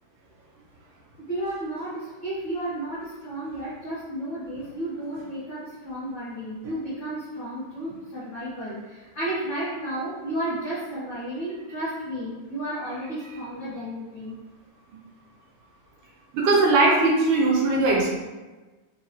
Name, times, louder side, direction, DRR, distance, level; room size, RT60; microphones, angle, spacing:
voice 1, 1.2-14.3, right 1 dB, 80° left, -10 dB, 1.0 m, -32 dB
voice 2, 16.3-18.1, right 3 dB, 80° right, -2 dB, 2.1 m, -19 dB
5.3 x 2.8 x 3.0 m, 1.2 s
omnidirectional pair, 3.9 m